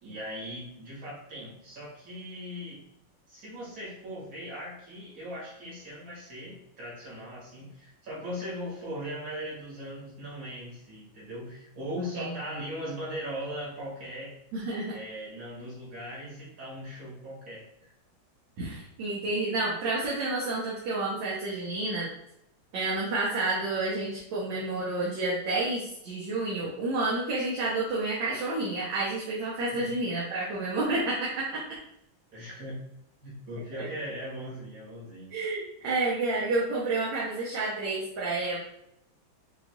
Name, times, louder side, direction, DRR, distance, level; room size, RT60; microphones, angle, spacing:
voice 1, 0.0-2.8 3.3-14.4 14.9-17.9 29.7-29.9 32.3-32.8 33.2-35.3, equal, 50° right, -6 dB, 2.1 m, -39 dB
voice 2, 12.0-12.3 14.5-15.0 18.6-22.1 22.7-31.6 33.8-33.9 35.3-38.6, right 2 dB, 65° right, -6 dB, 1.5 m, -30 dB
5.9 x 2.6 x 2.3 m, 0.79 s
omnidirectional pair, 2.2 m